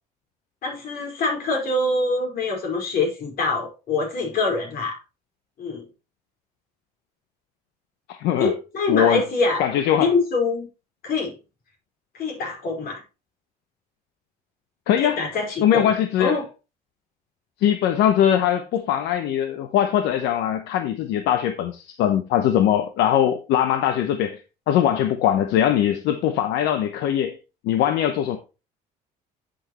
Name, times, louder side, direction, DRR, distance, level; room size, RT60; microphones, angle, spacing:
voice 1, 0.6-5.0 5.6-5.8 8.4-9.6 10.0-10.7 11.0-11.3 12.1-13.0 15.0-15.9 16.2-16.5, left 3 dB, 60° left, 4.7 m, -24 dB
voice 2, 8.1-8.5 8.9-9.2 9.6-10.1 14.9-15.2 15.6-16.4 17.6-24.4 24.7-27.4 27.6-28.4, left 10 dB, 85° left, 0.9 m, -21 dB
11.0 x 6.5 x 3.0 m
cardioid pair, 110°, 17 cm